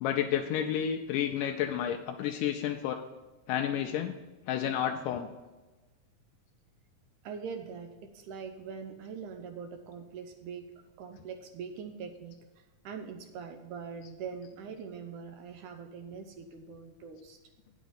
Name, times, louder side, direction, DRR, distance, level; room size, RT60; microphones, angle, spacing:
voice 1, 0.0-3.0 3.5-4.2 4.5-5.3, left 9 dB, 85° left, 4 dB, 2.2 m, -31 dB
voice 2, 7.2-10.7 11.0-12.4 12.8-17.4, right 6 dB, 75° right, 6 dB, 2.0 m, -42 dB
9.2 x 6.2 x 7.0 m, 1.2 s
omnidirectional pair, 3.8 m